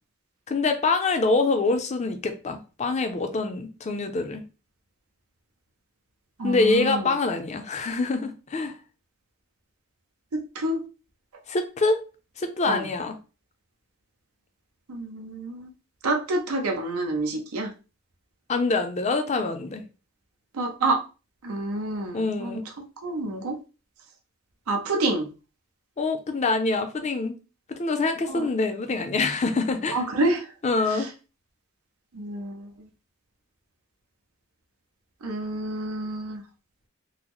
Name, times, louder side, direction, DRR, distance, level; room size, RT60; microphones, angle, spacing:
voice 1, 0.5-4.4 6.4-8.7 11.5-12.0 12.4-13.1 18.5-19.8 22.1-22.6 26.0-27.4 27.7-30.0 30.6-31.1, left 3 dB, 30° left, 0.5 m, -25 dB
voice 2, 6.4-7.0 10.3-10.8 12.7-12.8 14.9-15.7 16.0-17.7 20.5-21.0 21.4-22.6 23.0-23.6 24.7-25.3 28.3-28.5 29.9-30.4 32.2-32.6 35.2-36.4, right 2 dB, 90° right, 0.6 m, -28 dB
3.9 x 2.0 x 3.0 m
head